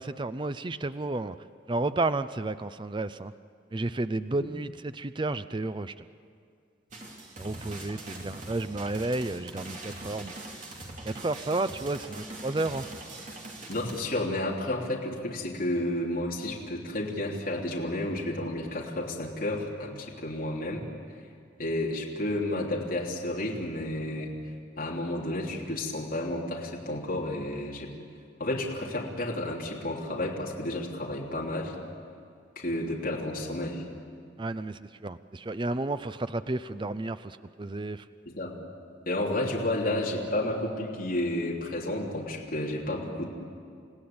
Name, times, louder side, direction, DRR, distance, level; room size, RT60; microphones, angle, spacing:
voice 1, 0.0-1.4 1.7-3.3 3.7-6.1 7.4-10.4 11.0-12.9 34.4-38.0, right 2 dB, 25° right, 12 dB, 0.5 m, -32 dB
sound 1, 6.9-14.0, right 2 dB, 40° right, 3.3 m, -42 dB
voice 2, 13.7-20.8 21.6-24.3 24.8-27.9 28.4-31.8 32.5-33.8 38.2-38.6 39.0-43.3, left 1 dB, 50° left, -3 dB, 3.4 m, -31 dB
29.5 x 16.5 x 8.7 m, 2.3 s
head